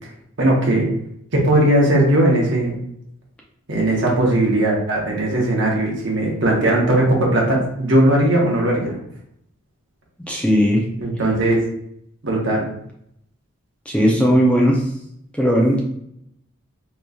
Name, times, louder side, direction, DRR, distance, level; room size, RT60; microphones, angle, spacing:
voice 1, 0.4-0.9 1.3-2.8 3.7-8.9 11.0-11.6 12.2-12.7, right 1 dB, 55° right, -1 dB, 0.9 m, -18 dB
voice 2, 10.3-10.8 13.9-14.8 15.4-15.8, equal, 5° left, -2 dB, 0.5 m, -16 dB
3.8 x 3.0 x 2.3 m, 0.72 s
head